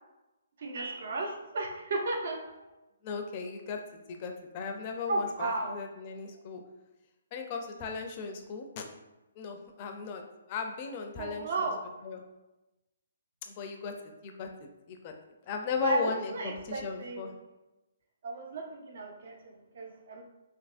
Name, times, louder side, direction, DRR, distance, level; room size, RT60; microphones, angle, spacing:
voice 1, 0.6-2.7 5.1-5.9 11.2-11.8 15.8-17.3 18.2-20.2, right 2 dB, 60° right, 2 dB, 0.6 m, -34 dB
voice 2, 3.0-6.6 7.3-8.8 9.4-10.2 10.5-11.7 12.0-12.2 13.4-15.1 15.5-17.3, left 5 dB, 35° left, 4 dB, 0.4 m, -37 dB
3.4 x 2.9 x 2.5 m, 1.0 s
hypercardioid pair, 155°, 0 cm